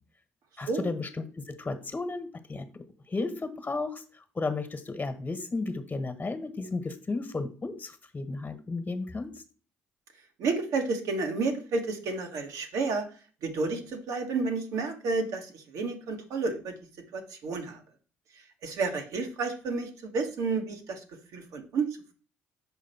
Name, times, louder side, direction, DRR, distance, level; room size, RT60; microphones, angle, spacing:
voice 1, 0.6-9.3, left 3 dB, 25° left, 9 dB, 1.5 m, -34 dB
voice 2, 10.4-13.1 13.4-16.7 17.1-17.8 18.6-21.0 21.3-21.8, right 4 dB, 70° right, 5 dB, 1.5 m, -31 dB
6.2 x 5.2 x 4.4 m, 0.38 s
hypercardioid pair, 60°, 6 cm